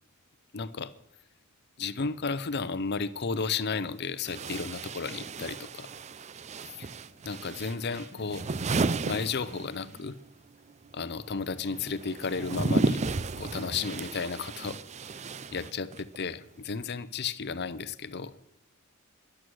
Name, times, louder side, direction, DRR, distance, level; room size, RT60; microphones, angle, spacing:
voice 1, 0.5-0.9 1.8-5.9 6.8-6.9 7.2-8.5 9.0-10.2 10.9-13.0 13.4-14.8 15.5-18.3, left 5 dB, 50° left, 15 dB, 0.7 m, -33 dB
sound 1, 3.3-3.4 4.2-10.1 10.3-16.2, right 3 dB, 30° right, 0.5 m, -33 dB
sound 2, 6.8-10.1, right 3 dB, 85° left, 1.4 m, -53 dB
12.5 x 11.0 x 6.3 m, 0.80 s
head